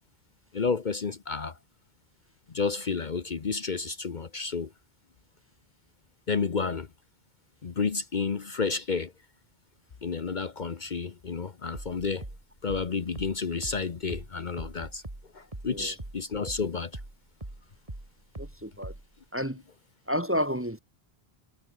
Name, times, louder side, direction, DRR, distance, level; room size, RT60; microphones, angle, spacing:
voice 1, 0.5-1.6 2.5-4.7 6.3-6.9 7.6-9.1 10.0-12.2 12.6-15.0 15.3-16.9, left 5 dB, 50° left, 1.1 m, -31 dB
sound 1, 11.7-16.7 16.9-19.2, right 1 dB, 35° right, 3.4 m, -41 dB
voice 2, 18.4-18.9 19.3-19.6 20.1-20.8, equal, 10° right, 1.4 m, -30 dB
omnidirectional pair, 1.1 m